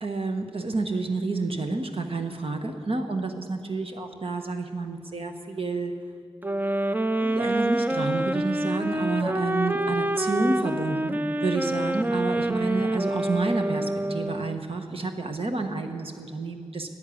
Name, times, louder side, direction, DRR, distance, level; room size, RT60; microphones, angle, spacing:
voice 1, 0.0-5.9 7.2-16.9, right 3 dB, 65° right, 5 dB, 1.3 m, -29 dB
sound 1, 6.4-14.6, right 1 dB, 20° right, 0.5 m, -27 dB
11.0 x 10.0 x 8.6 m, 2.2 s
cardioid pair, 50°, 10 cm